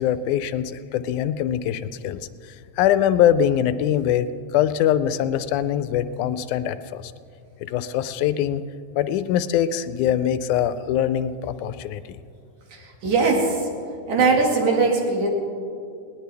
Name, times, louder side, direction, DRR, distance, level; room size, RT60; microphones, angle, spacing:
voice 1, 0.0-2.2 2.8-4.3 4.5-7.1 7.6-8.6 8.9-12.2, left 10 dB, 85° left, 13 dB, 2.0 m, -23 dB
voice 2, 13.0-13.6 14.1-15.3, right 4 dB, 75° right, 0 dB, 3.4 m, -20 dB
19.5 x 18.5 x 3.4 m, 2.4 s
omnidirectional pair, 3.5 m